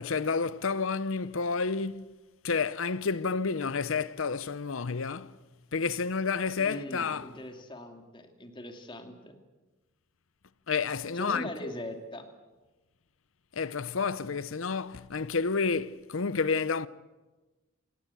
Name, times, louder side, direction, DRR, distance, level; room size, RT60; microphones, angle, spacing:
voice 1, 0.0-2.1 2.4-5.4 5.7-7.3 10.7-11.7 13.5-16.9, left 5 dB, 75° left, 0.7 m, -30 dB
voice 2, 6.6-9.3 11.1-12.3, left 1 dB, 25° left, 2.4 m, -41 dB
26.5 x 17.5 x 8.3 m
head